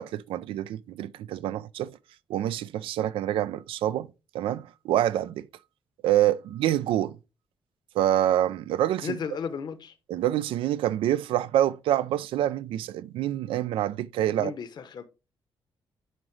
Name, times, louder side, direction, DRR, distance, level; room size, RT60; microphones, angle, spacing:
voice 1, 0.0-1.9 2.3-4.1 4.3-5.4 6.0-7.2 8.0-9.2 10.1-14.5, right 12 dB, 90° right, 0.4 m, -26 dB
voice 2, 9.0-9.9 14.3-15.0, left 6 dB, 55° left, 0.8 m, -34 dB
9.2 x 5.0 x 3.1 m
cardioid pair, 100°, 9 cm